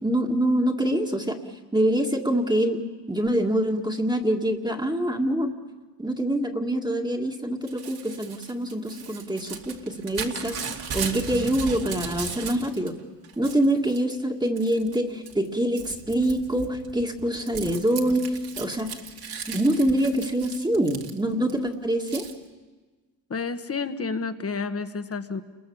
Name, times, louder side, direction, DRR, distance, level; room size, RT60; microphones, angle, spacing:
voice 1, 0.0-1.4 1.7-5.5 6.0-10.6 10.9-12.9 13.4-19.0 19.5-22.3, right 1 dB, 10° right, 2 dB, 2.0 m, -25 dB
Crumpling crinkling / Tearing, 7.7-12.9 13.2-14.0 14.6-15.0 15.3-21.5 22.1-22.3, right 6 dB, 60° right, 2.6 m, -37 dB
voice 2, 23.3-25.4, left 4 dB, 35° left, 9 dB, 1.6 m, -30 dB
29.0 x 21.5 x 7.2 m, 1.3 s
cardioid pair, 75°, 42 cm